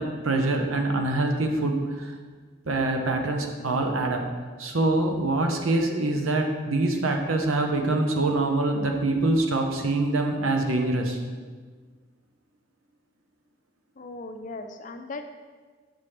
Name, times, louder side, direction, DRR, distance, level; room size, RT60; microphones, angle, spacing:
voice 1, 0.0-2.1 2.7-4.2 4.6-11.2, right 2 dB, 85° right, 3 dB, 0.9 m, -25 dB
voice 2, 14.0-15.3, left 3 dB, 40° left, 6 dB, 0.4 m, -38 dB
7.4 x 6.0 x 3.3 m, 1.5 s
head